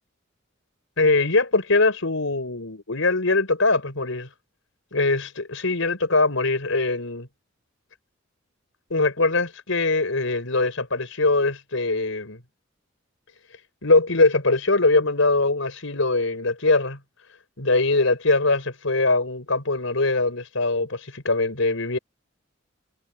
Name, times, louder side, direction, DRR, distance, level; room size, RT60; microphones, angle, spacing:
voice 1, 1.0-4.3 4.9-7.3 8.9-12.4 13.8-17.0 17.6-22.0, left 3 dB, 85° left, 4.6 m, -22 dB
head